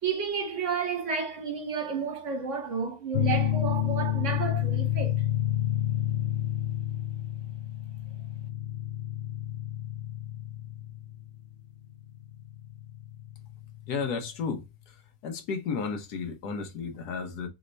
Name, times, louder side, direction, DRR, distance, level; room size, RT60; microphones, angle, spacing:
voice 1, 0.0-5.1, right 6 dB, 55° right, 1.3 m, -31 dB
sound 1, 3.1-14.3, left 12 dB, 60° left, 0.7 m, -30 dB
voice 2, 13.9-15.0 15.2-17.5, left 5 dB, 85° left, 1.5 m, -33 dB
3.5 x 3.2 x 3.9 m
omnidirectional pair, 1.6 m